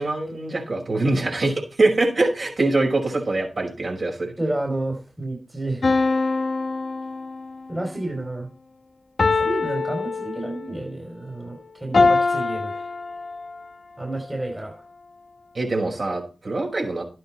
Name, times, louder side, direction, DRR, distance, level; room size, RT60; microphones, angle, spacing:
voice 1, 0.0-4.3 15.5-17.0, right 2 dB, 55° right, -1 dB, 5.5 m, -23 dB
voice 2, 4.4-5.9 7.7-8.5 9.4-12.8 14.0-14.7, right 2 dB, 20° right, 3 dB, 3.2 m, -30 dB
sound 1, 5.8-7.7 9.2-10.8 11.9-13.7, left 3 dB, 60° left, 1.3 m, -23 dB
12.0 x 9.2 x 4.4 m, 0.33 s
cardioid pair, 45°, 0 cm